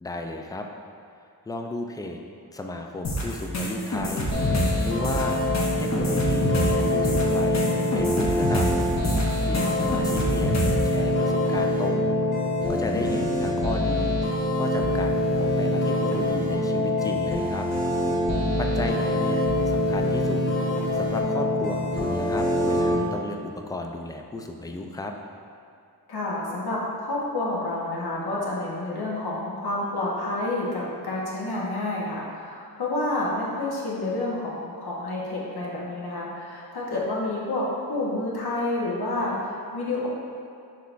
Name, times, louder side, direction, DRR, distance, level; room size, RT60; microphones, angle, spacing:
voice 1, 0.0-0.7 1.5-2.2 2.5-5.4 5.8-8.7 9.4-10.6 10.8-12.1 12.7-14.2 14.5-17.7 18.6-25.1, left 2 dB, 10° left, 3 dB, 0.3 m, -34 dB
sound 1, 3.0-10.9, equal, 45° left, 0.8 m, -27 dB
sound 2, 4.3-22.9, left 1 dB, 30° left, 1.2 m, -24 dB
voice 2, 12.8-13.3 26.1-40.1, left 2 dB, 70° left, -5 dB, 1.0 m, -29 dB
5.6 x 3.4 x 2.5 m, 2.5 s
cardioid pair, 50°, 39 cm